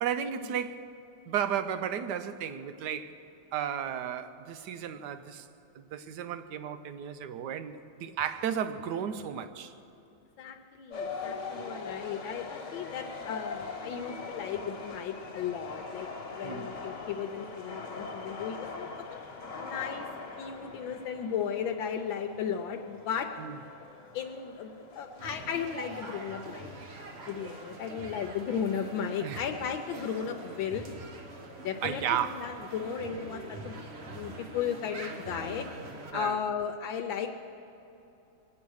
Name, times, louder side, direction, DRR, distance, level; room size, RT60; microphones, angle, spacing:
voice 1, 0.0-0.8 1.3-3.2 3.5-5.5 5.7-9.7 16.4-16.7 23.4-23.6 29.2-29.4 31.8-32.5 36.1-36.4, right 9 dB, 70° right, 1.2 m, -34 dB
voice 2, 10.4-18.9 19.6-20.1 20.4-23.3 24.1-26.7 27.3-30.9 31.6-33.8 34.1-35.6 36.1-37.4, left 7 dB, 80° left, 1.4 m, -35 dB
sound 1, 10.9-29.2, left 4 dB, 45° left, 1.5 m, -43 dB
sound 2, 25.2-36.1, right 2 dB, 40° right, 1.1 m, -44 dB
22.0 x 8.5 x 6.3 m
omnidirectional pair, 2.1 m